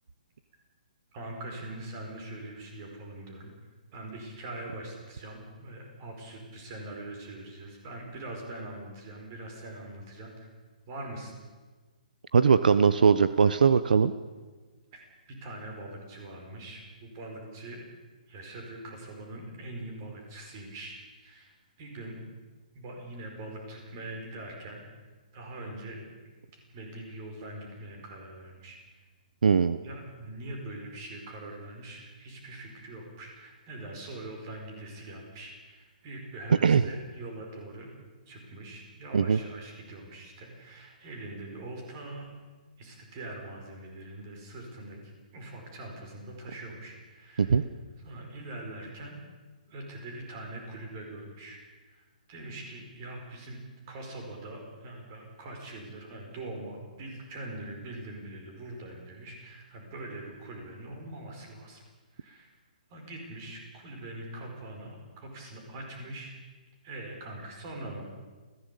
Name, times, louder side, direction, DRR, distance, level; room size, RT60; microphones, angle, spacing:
voice 1, 1.1-3.5 3.9-10.5 10.9-11.3 14.9-15.0 15.3-17.8 18.3-22.2 22.7-24.8 25.3-26.1 26.5-29.1 29.8-37.9 38.3-42.3 42.8-47.6 48.0-49.2 49.7-51.6 51.9-53.6 53.9-61.8 62.1-62.5 62.9-66.3 66.8-68.0, right 2 dB, 20° right, 2 dB, 4.9 m, -42 dB
voice 2, 12.3-14.1 29.4-29.8 36.6-36.8 39.1-39.4 47.4-47.6, right 6 dB, 70° right, 13 dB, 1.0 m, -21 dB
28.0 x 16.0 x 8.4 m, 1.3 s
hypercardioid pair, 180°, 5 cm